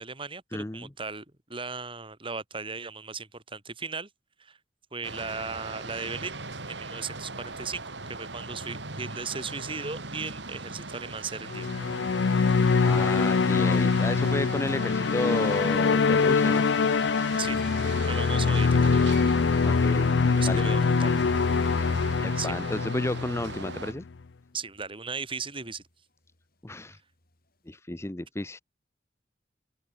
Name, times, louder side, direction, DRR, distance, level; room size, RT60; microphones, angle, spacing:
voice 1, 0.0-4.1 4.4-4.6 4.9-6.4 6.7-7.8 8.1-11.7 12.5-12.6 17.4-17.6 18.1-18.9 20.4-21.2 22.4-22.5 24.5-25.8, right 4 dB, 30° right, 4.0 m, -36 dB
voice 2, 0.5-0.9 12.8-16.7 19.6-20.1 20.5-20.6 22.2-24.0 26.6-27.0 27.7-28.6, left 1 dB, 15° left, 0.8 m, -32 dB
sound 1, 5.0-23.9, right 3 dB, 80° right, 4.9 m, -40 dB
sound 2, 11.5-24.0, left 4 dB, 80° left, 0.5 m, -24 dB
sound 3, 23.2-26.8 27.1-27.5, left 3 dB, 55° left, 5.0 m, -52 dB
open air
head